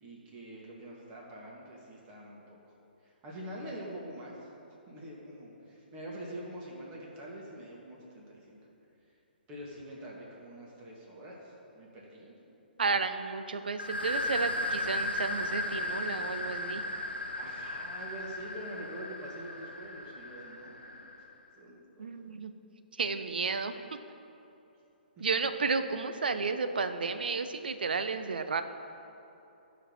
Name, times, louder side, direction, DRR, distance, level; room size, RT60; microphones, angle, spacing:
voice 1, 0.0-2.6 3.2-4.3 4.9-8.6 9.5-12.3 17.3-20.9 21.6-21.8, right 1 dB, 25° right, -3 dB, 2.0 m, -45 dB
voice 2, 12.8-16.8 22.0-22.5 23.0-23.7 25.2-28.6, right 4 dB, 60° right, 9 dB, 0.6 m, -32 dB
sound 1, 13.8-21.3, left 1 dB, 80° left, 0.8 m, -36 dB
15.5 x 5.4 x 4.1 m, 2.9 s
figure-of-eight pair, 125°, 6 cm